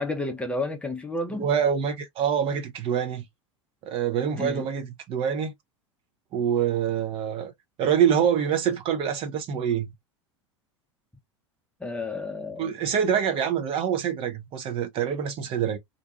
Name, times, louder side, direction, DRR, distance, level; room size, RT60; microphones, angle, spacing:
voice 1, 0.0-1.5 4.3-4.7 11.8-12.8, left 2 dB, 5° left, 0.6 m, -31 dB
voice 2, 1.4-3.2 3.8-5.5 6.3-7.5 7.8-9.9 12.6-15.8, right 8 dB, 35° right, 0.7 m, -25 dB
2.6 x 2.3 x 2.5 m
figure-of-eight pair, 80°, 16 cm